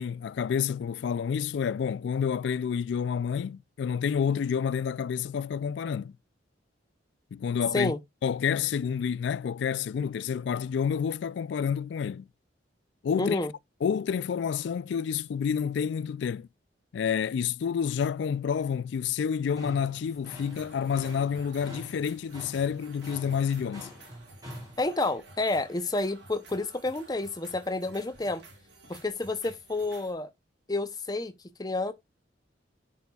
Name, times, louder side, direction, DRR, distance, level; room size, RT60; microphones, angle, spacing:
voice 1, 0.0-6.2 7.3-7.9 8.2-12.2 13.0-13.4 13.8-16.5 16.9-23.9, left 7 dB, 65° left, 0.3 m, -29 dB
voice 2, 13.2-13.5 24.8-28.4 28.9-30.3 30.7-31.3 31.6-31.9, left 2 dB, 20° left, 0.6 m, -29 dB
sound 1, 19.5-24.8, equal, 20° right, 4.4 m, -45 dB
sound 2, 20.4-30.1, right 2 dB, 65° right, 2.0 m, -52 dB
10.5 x 4.2 x 2.3 m
head